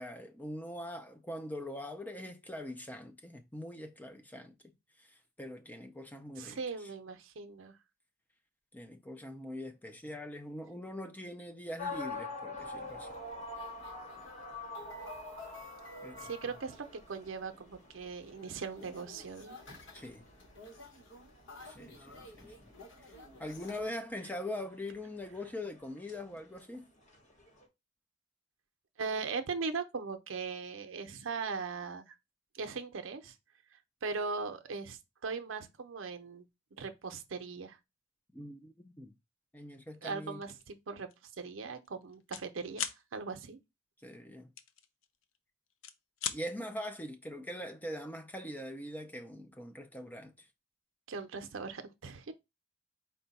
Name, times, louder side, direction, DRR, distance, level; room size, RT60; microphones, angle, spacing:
voice 1, 0.0-4.6 5.0-6.6 8.7-13.2 16.0-16.3 19.9-20.3 21.7-22.7 23.0-23.1 23.4-26.9 38.3-39.1 39.5-40.4 44.0-44.5 46.3-50.5, left 1 dB, 10° left, 0.4 m, -42 dB
voice 2, 6.4-7.7 16.2-19.6 29.0-32.2 32.5-33.3 34.0-36.4 36.8-37.8 40.0-43.6 51.1-52.3, right 4 dB, 80° right, 0.6 m, -39 dB
sound 1, 11.8-27.7, left 2 dB, 35° left, 1.0 m, -47 dB
sound 2, 12.5-23.8, left 2 dB, 70° left, 1.0 m, -53 dB
sound 3, 40.4-40.7 41.1-41.3 41.5-42.5 42.7-43.0 44.6-45.4 45.7-46.4, left 9 dB, 85° left, 0.5 m, -38 dB
4.4 x 2.2 x 4.0 m
head